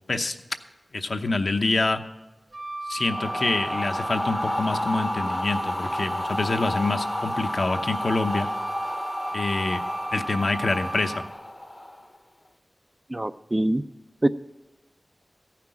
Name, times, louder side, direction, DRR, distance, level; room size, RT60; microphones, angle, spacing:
voice 1, 0.9-2.0 2.9-8.5 9.3-9.8 10.1-11.2, left 3 dB, 65° left, 6 dB, 0.8 m, -26 dB
Wind instrument woodwind instrument, 2.5-11.3, right 2 dB, 55° right, 1.4 m, -35 dB
sound 1, 3.1-12.2, left 1 dB, 20° left, 0.7 m, -31 dB
voice 2, 13.1-13.8 14.2-14.3, right 1 dB, 25° right, 11 dB, 0.4 m, -23 dB
14.5 x 5.9 x 8.7 m, 1.0 s
wide cardioid pair, 85°, 0 cm